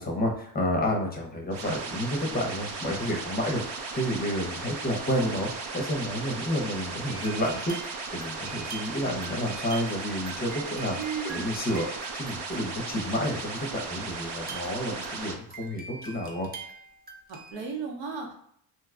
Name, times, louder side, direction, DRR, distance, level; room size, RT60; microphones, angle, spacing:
voice 1, 0.0-3.6 3.9-11.0 11.2-16.5, equal, 20° left, 0 dB, 0.6 m, -30 dB
sound 1, 1.5-15.3, right 4 dB, 65° right, 0.6 m, -36 dB
sound 2, 7.1-13.4 14.3-17.5, right 5 dB, 20° right, 0.4 m, -45 dB
voice 2, 11.0-11.5 17.3-18.3, right 5 dB, 85° right, 1 dB, 1.0 m, -35 dB
2.8 x 2.2 x 3.6 m, 0.67 s
cardioid pair, 135°, 45 cm